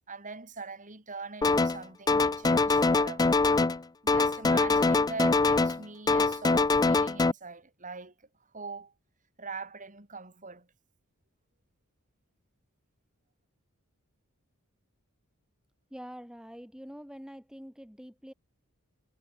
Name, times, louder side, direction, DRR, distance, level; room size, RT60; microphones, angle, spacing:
voice 1, 0.0-3.3 4.0-8.3 8.5-8.9 9.4-10.7, right 4 dB, 35° right, 6.2 m, -42 dB
sound 1, 1.4-1.8 2.1-3.8 4.1-5.8 6.1-7.3, left 3 dB, 15° left, 0.4 m, -24 dB
voice 2, 15.9-18.3, equal, 5° right, 3.2 m, -45 dB
head